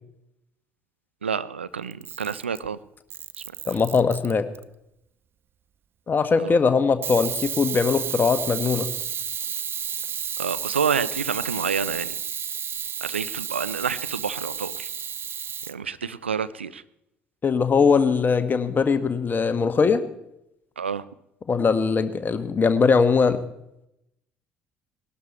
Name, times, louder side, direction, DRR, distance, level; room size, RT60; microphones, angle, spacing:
voice 1, 1.2-2.8 6.4-6.5 10.4-12.1 13.0-14.9 15.7-16.8 20.8-21.1, right 6 dB, 85° right, 15 dB, 0.5 m, -28 dB
Camera, 1.9-2.7 3.1-4.6 7.0-15.7, right 8 dB, 40° right, 0.6 m, -32 dB
voice 2, 3.7-4.4 6.1-8.9 17.4-20.0 21.5-23.4, left 5 dB, 30° left, 10 dB, 1.3 m, -21 dB
19.5 x 12.5 x 4.3 m, 0.82 s
figure-of-eight pair, 55°, 6 cm